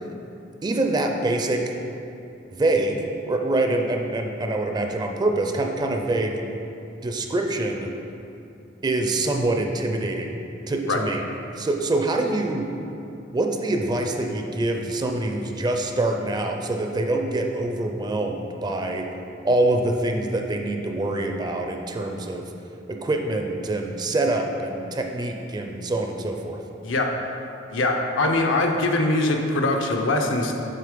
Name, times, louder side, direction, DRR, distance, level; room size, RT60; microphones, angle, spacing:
voice 1, 0.6-1.7 2.5-6.4 7.0-7.9 8.8-10.3 10.7-11.2 11.6-12.7 13.3-19.1 19.4-22.4 22.9-26.6, right 2 dB, 20° right, 3 dB, 0.4 m, -25 dB
voice 2, 27.7-30.5, left 2 dB, 80° left, 2 dB, 0.6 m, -22 dB
6.6 x 3.6 x 5.0 m, 2.7 s
head